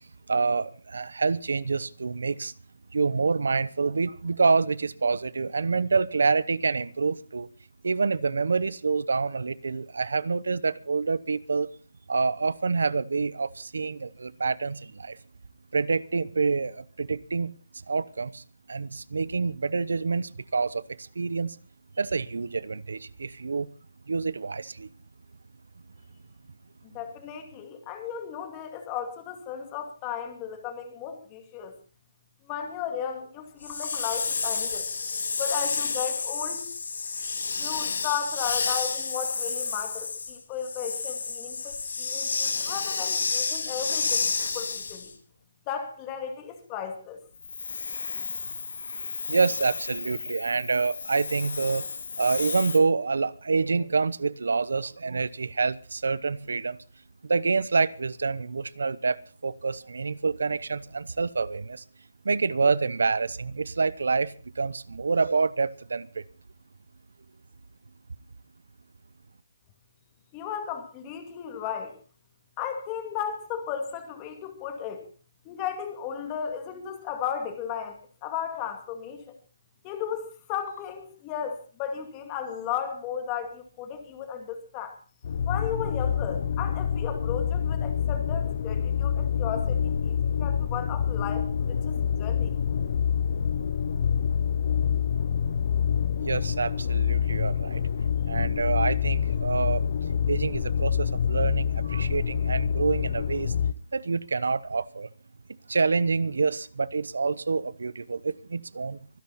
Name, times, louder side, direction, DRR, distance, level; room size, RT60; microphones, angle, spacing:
voice 1, 0.3-2.5 2.9-7.5 7.8-11.7 12.1-15.2 15.7-17.6 17.9-21.6 22.0-23.7 24.1-24.9 49.3-51.8 52.2-56.8 57.2-61.8 62.2-66.2 96.2-97.8 98.3-99.8 100.3-103.5 103.9-105.1 105.7-109.0, right 4 dB, 80° right, 0.9 m, -27 dB
voice 2, 26.8-31.7 32.5-34.9 35.4-36.7 37.6-44.3 44.5-45.1 45.7-47.2 70.3-72.0 72.6-75.0 75.4-79.4 79.8-85.0 85.5-91.9 92.2-92.5, left 8 dB, 15° left, 2.4 m, -35 dB
Hiss, 33.6-45.1 47.4-52.8, left 5 dB, 70° left, 3.1 m, -31 dB
sound 1, 85.2-103.7, left 7 dB, 40° left, 0.8 m, -26 dB
24.5 x 10.5 x 4.2 m
hypercardioid pair, 175°, 0 cm